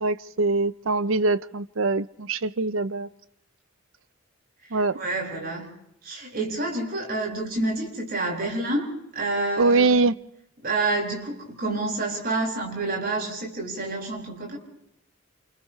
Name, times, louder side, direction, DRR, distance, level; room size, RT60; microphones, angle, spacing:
voice 1, 0.0-3.1 4.7-5.0 9.6-10.1, right 3 dB, 65° right, 0.7 m, -23 dB
voice 2, 4.7-5.7 6.0-9.9 10.6-14.6, right 2 dB, 45° right, 6.4 m, -28 dB
29.5 x 29.0 x 3.2 m
head